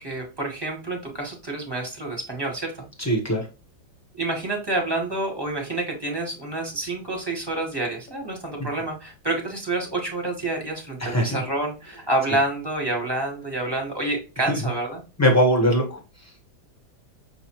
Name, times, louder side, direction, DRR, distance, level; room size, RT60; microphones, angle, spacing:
voice 1, 0.0-2.8 4.2-15.0, right 2 dB, 15° right, -1 dB, 0.9 m, -28 dB
voice 2, 3.0-3.5 11.0-11.4 14.5-14.7 15.2-16.0, equal, 15° left, 1 dB, 0.5 m, -21 dB
6.0 x 2.6 x 3.0 m, 0.30 s
omnidirectional pair, 2.1 m